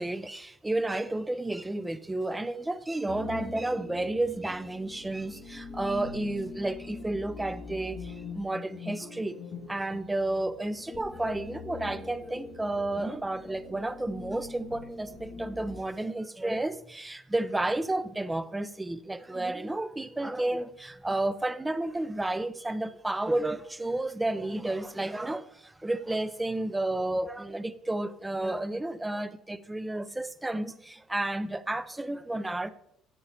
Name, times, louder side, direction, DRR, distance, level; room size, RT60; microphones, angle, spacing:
voice 1, 0.0-9.4 9.7-32.7, right 2 dB, 10° right, 0.6 m, -31 dB
sound 1, 3.1-15.8, left 3 dB, 35° left, 2.8 m, -43 dB
14.0 x 8.6 x 2.7 m
supercardioid pair, 95°, 0 cm